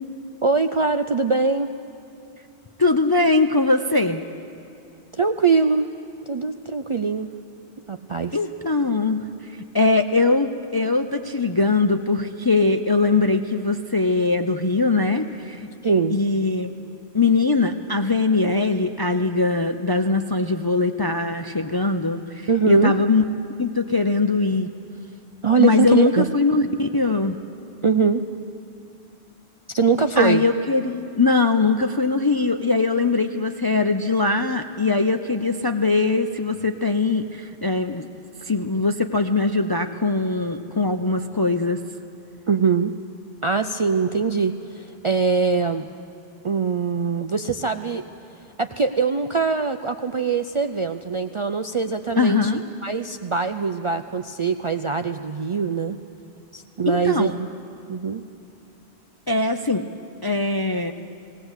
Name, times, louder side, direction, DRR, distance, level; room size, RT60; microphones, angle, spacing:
voice 1, 0.4-1.7 5.1-5.9 6.3-7.3 7.9-8.4 15.8-16.2 22.5-23.0 25.4-26.3 27.8-28.2 29.7-30.4 42.5-42.9 43.4-45.9 46.4-48.1 48.6-52.5 52.8-56.0 56.5-57.5 57.9-58.2, right 5 dB, 50° right, 7 dB, 0.4 m, -22 dB
voice 2, 2.8-4.2 8.3-15.7 16.1-16.7 17.1-23.2 23.6-24.7 25.6-27.4 30.2-38.1 38.4-41.8 52.2-52.6 56.9-57.3 59.3-59.9 60.2-60.9, left 3 dB, 35° left, 6 dB, 0.4 m, -21 dB
18.5 x 18.0 x 8.0 m, 2.6 s
omnidirectional pair, 1.1 m